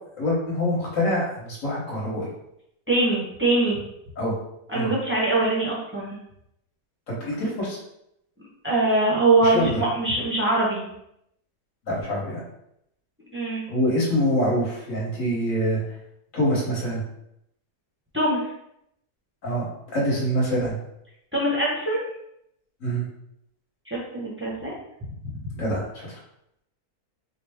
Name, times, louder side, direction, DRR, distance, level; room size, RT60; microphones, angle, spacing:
voice 1, 0.2-2.3 4.2-4.3 4.7-4.9 7.1-7.8 9.4-9.8 11.9-12.4 13.7-15.8 16.3-17.0 19.4-20.7 22.8-23.0 25.5-26.1, equal, 55° left, -5 dB, 1.6 m, -25 dB
voice 2, 2.9-3.8 4.7-6.2 8.6-10.9 13.3-13.6 18.1-18.4 21.3-22.0 23.9-24.8, right 2 dB, 10° right, -6 dB, 0.7 m, -23 dB
4.8 x 2.1 x 3.4 m, 0.78 s
omnidirectional pair, 1.7 m